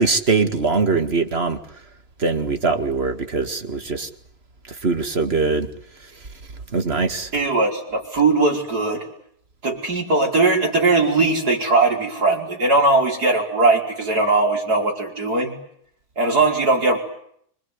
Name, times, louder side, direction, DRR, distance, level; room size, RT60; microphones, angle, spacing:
voice 1, 0.0-1.6 2.2-4.1 4.8-5.7 6.7-7.3, right 4 dB, 30° right, 9 dB, 2.0 m, -21 dB
voice 2, 7.3-9.1 9.6-15.5 16.2-17.0, right 3 dB, 45° right, 2 dB, 5.6 m, -19 dB
25.5 x 23.0 x 9.8 m, 0.68 s
omnidirectional pair, 2.3 m